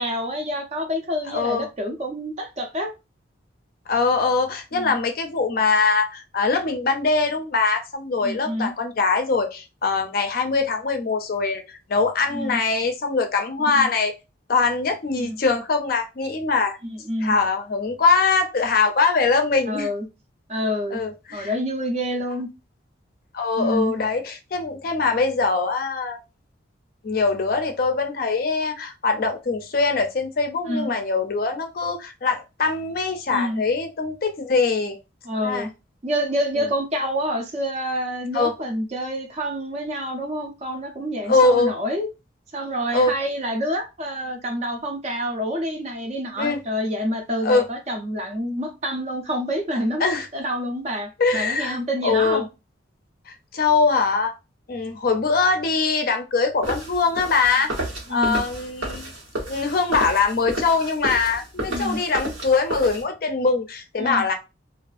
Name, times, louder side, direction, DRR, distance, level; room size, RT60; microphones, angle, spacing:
voice 1, 0.0-2.9 4.7-5.0 8.2-8.7 12.3-12.6 13.7-13.9 15.2-15.4 16.8-17.3 19.7-20.0 20.5-21.0 21.3-22.5 23.6-23.9 30.7-30.9 33.3-33.6 35.2-35.7 36.0-42.1 42.5-50.1 50.3-52.5 58.1-58.5 61.7-62.0 64.0-64.2, equal, 35° right, 0.5 m, -27 dB
voice 2, 1.3-1.7 3.9-11.6 11.9-14.1 14.5-16.8 17.2-19.9 20.9-21.5 23.3-26.2 27.0-35.0 35.4-35.7 38.3-38.5 41.3-41.7 42.9-43.1 46.4-46.6 47.4-47.6 50.0-50.3 51.2-51.8 52.0-52.4 53.5-54.3 54.7-57.7 58.1-59.1 59.5-64.3, left 4 dB, 50° left, 0.4 m, -22 dB
sound 1, 56.6-63.0, right 1 dB, 85° right, 1.0 m, -32 dB
2.5 x 2.3 x 2.4 m
head